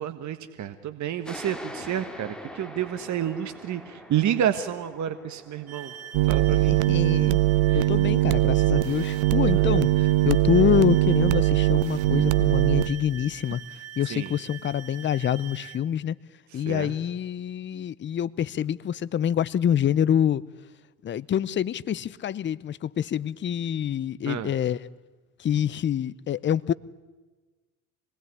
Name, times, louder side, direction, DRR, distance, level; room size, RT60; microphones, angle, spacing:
voice 1, 0.0-5.9 6.3-6.7 7.7-7.9 9.5-9.8 14.0-14.3 16.5-16.9 24.3-24.5, right 10 dB, 40° right, 1.6 m, -30 dB
sound 1, 1.2-8.4, equal, ahead, 3.4 m, -44 dB
sound 2, 5.7-15.8, right 10 dB, 85° right, 2.5 m, -44 dB
sound 3, 6.1-12.9, right 18 dB, 65° right, 1.2 m, -21 dB
voice 2, 6.5-7.4 7.7-16.2 16.5-20.4 21.0-24.8 25.4-26.7, left 9 dB, 25° left, 0.7 m, -26 dB
25.5 x 20.0 x 9.8 m
hypercardioid pair, 80°, 42 cm